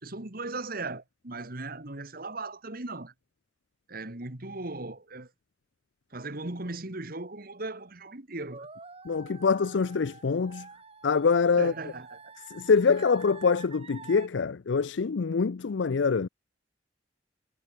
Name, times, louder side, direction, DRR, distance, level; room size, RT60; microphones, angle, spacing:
voice 1, 0.0-3.1 3.9-5.3 6.1-8.7 11.6-12.3, right 2 dB, 55° right, 2.3 m, -38 dB
sound 1, 8.5-14.3, right 4 dB, 35° right, 4.0 m, -48 dB
voice 2, 9.1-10.7 11.0-11.7 12.5-16.3, left 5 dB, 80° left, 0.5 m, -25 dB
head